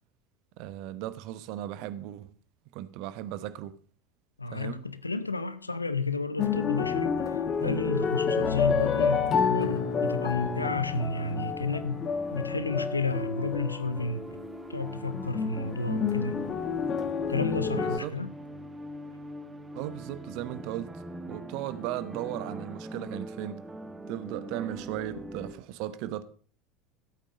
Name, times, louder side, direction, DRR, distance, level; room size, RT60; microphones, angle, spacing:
voice 1, 0.6-2.4 2.7-3.8 4.5-4.8 17.7-18.2 19.7-23.6 24.1-26.2, right 13 dB, 55° right, 0.9 m, -36 dB
voice 2, 4.4-14.2 14.7-16.4 17.3-18.3, left 3 dB, 85° left, 0.7 m, -32 dB
sound 1, 6.4-18.0, left 6 dB, 35° left, 1.4 m, -29 dB
sound 2, 9.2-25.5, right 1 dB, 15° right, 1.2 m, -43 dB
13.5 x 8.6 x 5.0 m
figure-of-eight pair, 75°, 0 cm